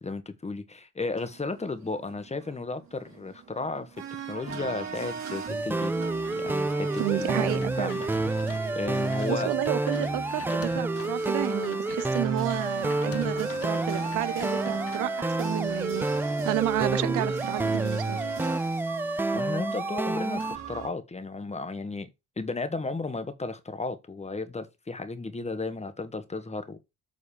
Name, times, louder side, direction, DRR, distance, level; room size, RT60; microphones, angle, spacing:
voice 1, 0.0-4.0 4.3-5.9 6.4-8.1 8.7-9.5 19.3-22.1 22.4-26.8, left 3 dB, 20° left, 1.4 m, -34 dB
sound 1, 1.1-20.9, right 7 dB, 65° right, 4.4 m, -40 dB
sound 2, 5.5-20.6, right 2 dB, 5° right, 0.3 m, -29 dB
voice 2, 7.0-8.0 9.3-18.2, right 18 dB, 85° right, 0.5 m, -31 dB
sound 3, 7.5-8.6 8.9-15.0, left 8 dB, 50° left, 1.0 m, -46 dB
7.6 x 4.0 x 5.0 m
cardioid pair, 90°, 30 cm